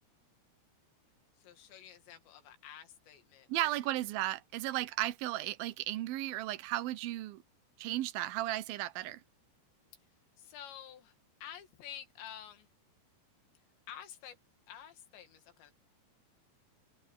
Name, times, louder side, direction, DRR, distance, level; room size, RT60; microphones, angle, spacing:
voice 1, 1.4-3.9 10.4-11.2 11.4-12.7 13.9-14.4 14.7-15.7, left 10 dB, 80° left, 4.4 m, -50 dB
voice 2, 3.5-7.4 7.8-9.2, right 15 dB, 70° right, 2.6 m, -35 dB
omnidirectional pair, 5.1 m